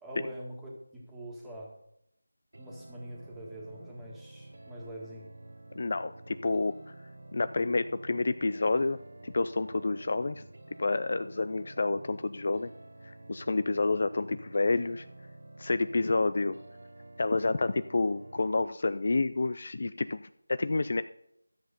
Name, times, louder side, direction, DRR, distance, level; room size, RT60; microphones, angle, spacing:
voice 1, 0.0-1.7 2.6-5.3, right 1 dB, 5° right, -4 dB, 1.8 m, -44 dB
sound 1, 2.5-18.5, right 2 dB, 65° right, 0.9 m, -50 dB
voice 2, 5.8-6.9 7.3-10.5 10.8-12.7 13.3-15.1 15.6-16.6 17.2-21.0, left 3 dB, 45° left, 12 dB, 0.4 m, -29 dB
13.0 x 7.7 x 5.1 m, 0.76 s
figure-of-eight pair, 165°, 0 cm